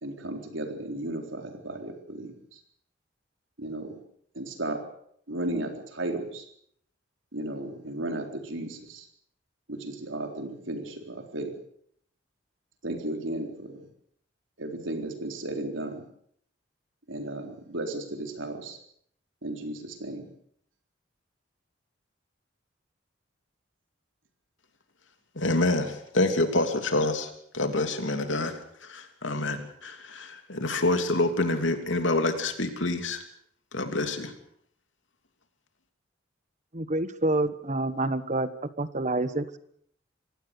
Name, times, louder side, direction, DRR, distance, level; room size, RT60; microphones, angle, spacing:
voice 1, 0.0-2.6 3.6-4.0 4.3-4.9 5.3-6.5 7.3-9.1 9.7-11.6 12.8-13.9 14.6-16.0 17.1-18.8 19.4-20.3, right 1 dB, 80° right, 4 dB, 4.0 m, -34 dB
voice 2, 25.3-33.2 33.7-34.3, left 2 dB, 75° left, 6 dB, 3.0 m, -27 dB
voice 3, 36.7-38.5 38.8-39.6, right 2 dB, 40° right, 13 dB, 1.3 m, -27 dB
24.5 x 18.0 x 6.7 m, 0.66 s
head